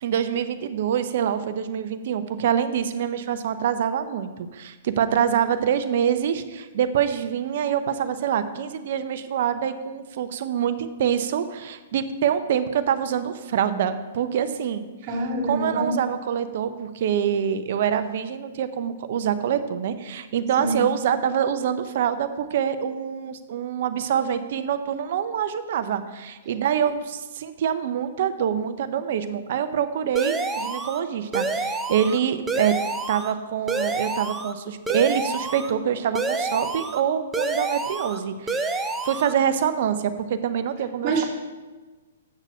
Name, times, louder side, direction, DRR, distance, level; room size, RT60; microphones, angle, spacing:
voice 1, 0.0-14.9 15.5-32.8 33.1-41.2, right 8 dB, 55° right, 11 dB, 0.8 m, -25 dB
voice 2, 15.1-15.9 20.6-20.8 26.5-26.6 41.0-41.3, right 2 dB, 30° right, -6 dB, 3.1 m, -26 dB
sound 1, 30.2-31.0 31.3-32.2 32.5-33.3 33.7-34.5 34.9-35.7 36.2-37.0 37.3-38.2 38.5-39.3, right 3 dB, 10° right, 0.7 m, -28 dB
8.5 x 6.6 x 6.2 m, 1.3 s
hypercardioid pair, 120°, 0 cm